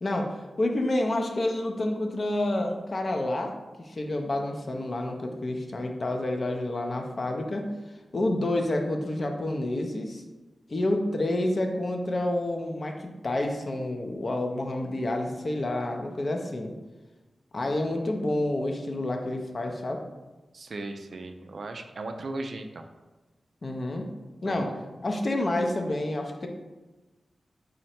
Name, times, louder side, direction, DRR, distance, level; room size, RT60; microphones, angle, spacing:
voice 1, 0.0-3.5 3.8-7.7 8.1-10.2 10.7-16.7 17.5-20.0 23.6-24.1 24.4-24.7 25.0-26.5, left 1 dB, 45° left, 3 dB, 0.4 m, -29 dB
voice 2, 20.5-22.9 24.4-24.8, right 2 dB, 60° right, 6 dB, 0.3 m, -37 dB
3.7 x 2.1 x 4.2 m, 1.2 s
wide cardioid pair, 120°, 0 cm